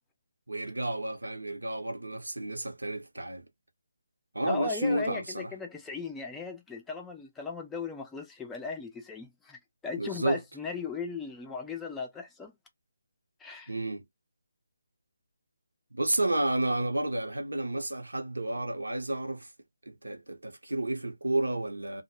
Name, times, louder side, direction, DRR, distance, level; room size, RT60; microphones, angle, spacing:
voice 1, 0.5-3.5 4.3-5.5 10.0-10.4 13.7-14.0 15.9-19.5 19.9-22.0, right 1 dB, 80° right, 0.7 m, -31 dB
voice 2, 4.4-12.5 13.4-13.7, left 4 dB, 5° left, 0.4 m, -37 dB
2.1 x 2.1 x 2.9 m
figure-of-eight pair, 150°, 0 cm